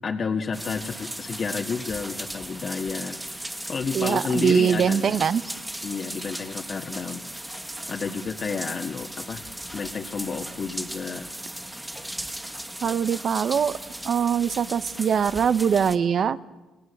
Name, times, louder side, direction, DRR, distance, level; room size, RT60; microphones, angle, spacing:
voice 1, 0.0-5.2 5.8-7.2 7.9-9.4 9.7-11.3, left 5 dB, 45° left, 2 dB, 1.7 m, -31 dB
sound 1, 0.5-16.0, right 1 dB, 10° right, 2.2 m, -37 dB
voice 2, 3.9-5.4 12.8-13.8 14.0-16.4, right 7 dB, 55° right, 14 dB, 1.2 m, -22 dB
29.5 x 19.0 x 8.3 m, 1.2 s
cardioid pair, 90°, 0 cm